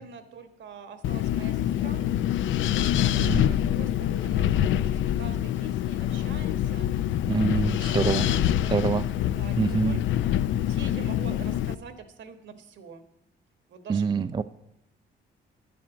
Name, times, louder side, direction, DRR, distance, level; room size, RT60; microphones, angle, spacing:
voice 1, 0.0-2.1 2.8-8.9 9.4-10.0 10.6-13.0 13.7-14.1, right 6 dB, 65° right, 9 dB, 1.4 m, -45 dB
Wind, 1.0-11.7, left 11 dB, 75° left, 0.4 m, -25 dB
voice 2, 3.2-3.5 7.3-8.3 8.7-9.1 9.6-10.0 13.9-14.4, right 5 dB, 25° right, 11 dB, 0.4 m, -25 dB
10.5 x 7.6 x 7.1 m, 0.80 s
cardioid pair, 90°, 20 cm